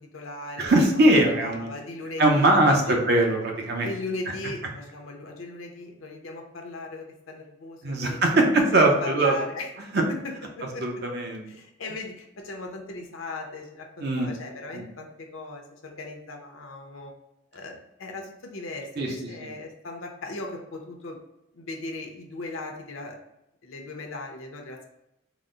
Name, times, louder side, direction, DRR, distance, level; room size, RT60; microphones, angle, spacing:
voice 1, 0.0-0.9 1.3-3.0 3.8-8.5 8.8-9.7 10.1-10.8 11.5-17.1 17.5-21.2 21.5-23.2 23.6-24.8, left 2 dB, 85° left, 2 dB, 0.7 m, -38 dB
voice 2, 0.6-1.7 2.2-3.9 7.8-9.3 10.8-11.4 14.0-14.3 14.7-14.8 19.0-19.1 19.4-19.5, right 1 dB, 50° right, 1 dB, 0.7 m, -21 dB
3.9 x 2.0 x 3.7 m, 0.85 s
head